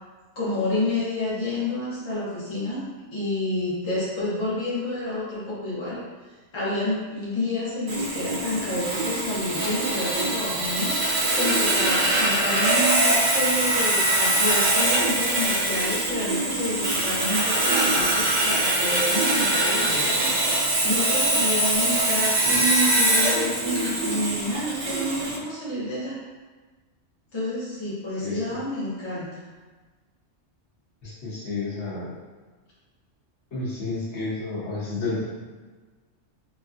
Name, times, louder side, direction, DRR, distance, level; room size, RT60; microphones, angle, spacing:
voice 1, 0.4-2.8 3.1-6.0 6.5-20.2 20.5-26.2 27.3-29.4, left 1 dB, 25° left, -9 dB, 0.7 m, -29 dB
Sawing, 7.9-25.4, right 1 dB, 75° right, 0.9 m, -23 dB
voice 2, 31.0-32.1 33.5-35.3, left 3 dB, 65° left, -8 dB, 1.2 m, -31 dB
3.1 x 2.7 x 2.4 m, 1.3 s
omnidirectional pair, 1.3 m